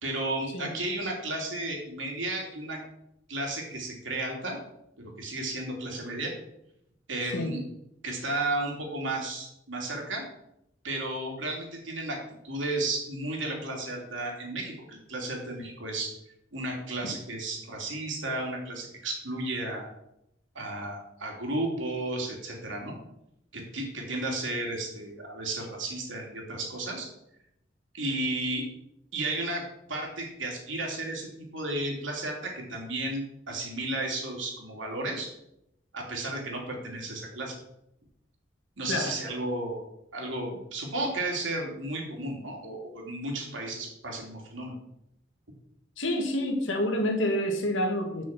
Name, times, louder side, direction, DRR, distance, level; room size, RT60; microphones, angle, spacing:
voice 1, 0.0-2.8 3.3-4.6 5.0-6.3 7.1-7.6 8.0-10.2 10.8-12.2 12.4-16.1 16.5-19.9 20.5-23.0 23.5-27.1 27.9-28.7 29.1-35.3 35.9-37.6 38.8-39.8 40.1-44.7, right 2 dB, 80° right, 0 dB, 2.9 m, -33 dB
voice 2, 46.0-48.2, left 1 dB, 85° left, 3 dB, 1.9 m, -28 dB
6.5 x 6.4 x 7.5 m, 0.80 s
head